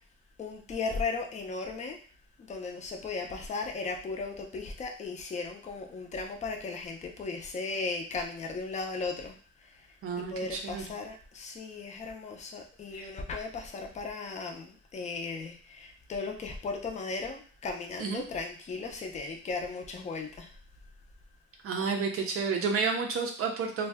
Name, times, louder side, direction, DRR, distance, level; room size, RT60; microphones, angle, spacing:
voice 1, 0.4-2.0 2.4-9.4 9.6-9.8 10.2-20.5, left 4 dB, 25° left, 2 dB, 0.4 m, -36 dB
voice 2, 10.0-10.8 12.9-13.1 18.0-18.2 21.6-23.9, right 5 dB, 50° right, 2 dB, 0.4 m, -31 dB
2.6 x 2.1 x 3.3 m, 0.43 s
cardioid pair, 170°, 29 cm